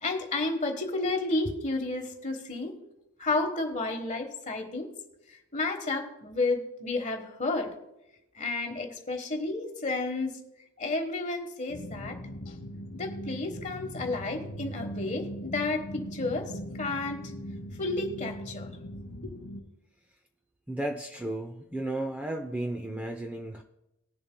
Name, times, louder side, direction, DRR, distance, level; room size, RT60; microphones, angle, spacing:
voice 1, 0.0-2.7 3.2-4.9 5.5-7.7 8.4-10.3 10.8-12.2 12.9-16.5 16.8-17.3 17.8-18.7 19.2-19.3, left 2 dB, 35° left, 4 dB, 1.3 m, -31 dB
sound 1, 11.7-19.6, equal, 60° left, 0.8 m, -40 dB
voice 2, 20.7-23.6, right 1 dB, 5° right, 3 dB, 0.5 m, -34 dB
19.5 x 6.9 x 2.2 m, 0.88 s
head